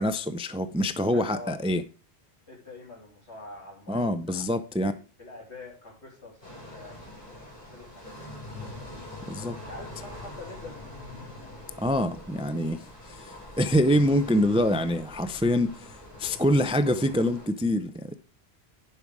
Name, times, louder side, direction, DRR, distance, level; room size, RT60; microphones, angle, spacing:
voice 1, 0.0-1.8 3.9-4.9 9.3-9.6 11.8-18.2, equal, 10° right, 0.3 m, -25 dB
voice 2, 1.1-1.6 2.5-4.4 4.9-8.2 9.5-11.0, left 2 dB, 80° left, 3.6 m, -46 dB
sound 1, 6.4-17.5, left 1 dB, 50° left, 5.2 m, -44 dB
11.0 x 5.7 x 4.7 m
omnidirectional pair, 1.1 m